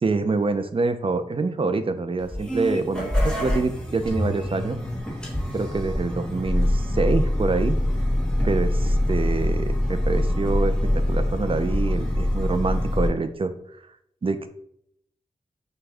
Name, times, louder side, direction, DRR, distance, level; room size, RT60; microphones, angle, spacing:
voice 1, 0.0-4.8 5.5-7.8 8.4-13.5 14.2-14.5, right 3 dB, 45° right, 9 dB, 0.5 m, -26 dB
sound 1, 2.2-13.1, left 1 dB, 5° left, 1.4 m, -24 dB
6.1 x 2.3 x 3.4 m, 0.71 s
cardioid pair, 60°, 13 cm